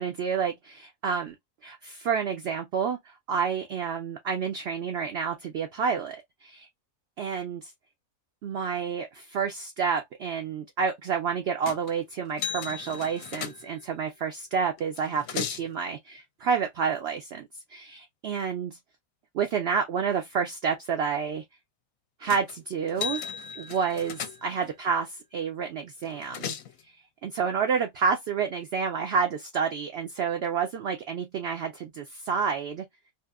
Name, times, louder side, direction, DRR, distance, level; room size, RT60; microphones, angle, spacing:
voice 1, 0.0-1.3 1.6-6.7 7.2-7.7 8.4-18.8 19.3-21.4 22.2-23.2 23.6-26.5 27.2-32.8, right 6 dB, 65° right, 0.6 m, -29 dB
sound 1, 11.6-12.0 12.4-14.0 14.8-15.7 22.3-22.5 22.9-24.7 26.0-26.8, left 8 dB, 75° left, 0.9 m, -36 dB
2.7 x 2.4 x 2.3 m
omnidirectional pair, 1.5 m